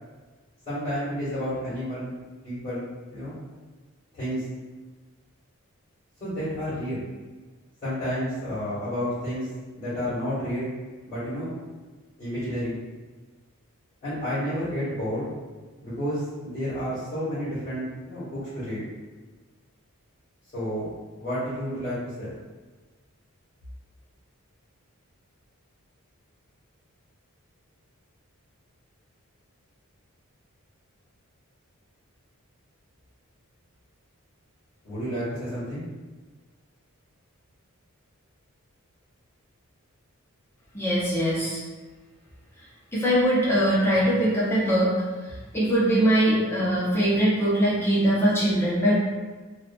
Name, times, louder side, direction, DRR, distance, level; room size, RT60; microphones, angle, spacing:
voice 1, 0.7-2.1 2.4-3.4 4.1-4.4 6.2-7.0 7.8-9.5 9.7-10.7 11.0-11.5 12.2-12.8 14.0-15.3 15.8-18.8 20.5-20.9 21.2-22.3 34.8-35.8, equal, 35° left, -14 dB, 1.3 m, -30 dB
voice 2, 40.7-41.6 42.9-44.9 45.5-49.0, equal, 10° left, -8 dB, 0.7 m, -22 dB
2.7 x 2.6 x 2.2 m, 1.3 s
head